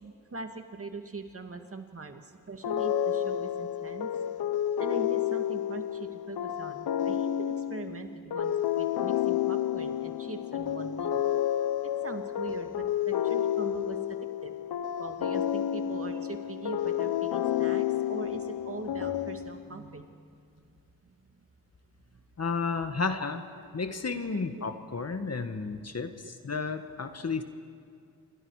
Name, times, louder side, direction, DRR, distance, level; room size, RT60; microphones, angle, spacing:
voice 1, 0.0-4.1 4.8-11.2 12.0-14.0 14.4-14.5 15.0-20.1 22.1-22.2 22.7-23.6 24.0-25.4 26.2-26.4, right 3 dB, 35° right, 5 dB, 2.1 m, -42 dB
sound 1, 2.6-19.8, left 10 dB, 75° left, 0.8 m, -30 dB
voice 2, 22.4-23.4 23.7-27.4, left 4 dB, 40° left, 8 dB, 1.5 m, -32 dB
27.5 x 24.5 x 4.9 m, 2.3 s
cardioid pair, 65°, 38 cm